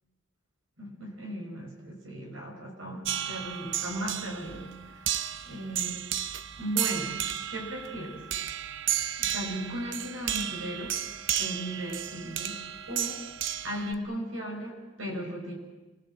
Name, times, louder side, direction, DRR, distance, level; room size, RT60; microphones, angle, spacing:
voice 1, 0.8-4.8 5.5-6.0 6.6-7.2 7.5-8.2 9.2-11.0 11.4-12.6 12.9-13.2 13.6-15.6, right 1 dB, 85° right, 2 dB, 5.4 m, -36 dB
sound 1, 3.0-13.9, right 10 dB, 65° right, 0.8 m, -33 dB
26.5 x 21.5 x 7.5 m, 1.1 s
head